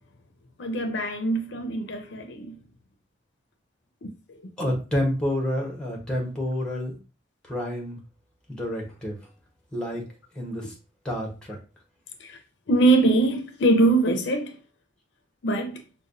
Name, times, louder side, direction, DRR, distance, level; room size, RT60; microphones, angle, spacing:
voice 1, 0.6-2.6 4.0-4.1 12.2-12.4 12.7-14.5 15.4-15.8, right 2 dB, 70° left, 0.6 m, -22 dB
voice 2, 4.6-7.0 7.5-8.0 8.5-9.2 9.7-10.0 10.3-10.7 11.0-11.6, left 1 dB, 5° left, 1.0 m, -28 dB
5.2 x 2.2 x 2.6 m
head